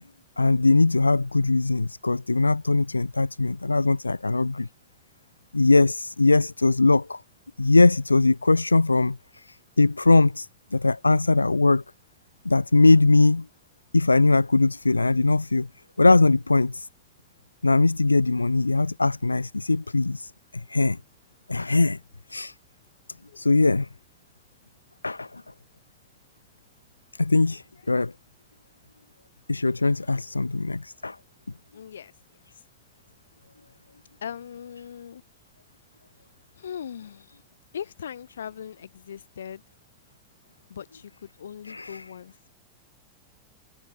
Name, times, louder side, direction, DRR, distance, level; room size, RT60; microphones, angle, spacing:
voice 1, 0.4-4.7 5.5-7.2 7.6-11.8 12.4-13.5 13.9-15.7 16.0-16.9 17.6-21.0 21.5-22.0 22.3-22.5 23.4-23.9 25.0-25.4 27.2-28.1 29.5-31.2 41.6-42.0, left 3 dB, 80° left, 0.9 m, -21 dB
voice 2, 27.4-27.9 30.0-30.2 31.7-32.1 32.5-32.6 34.2-35.2 36.5-37.4 37.7-39.6 40.7-42.5, left 8 dB, 65° left, 7.4 m, -40 dB
figure-of-eight pair, 90°, 0 cm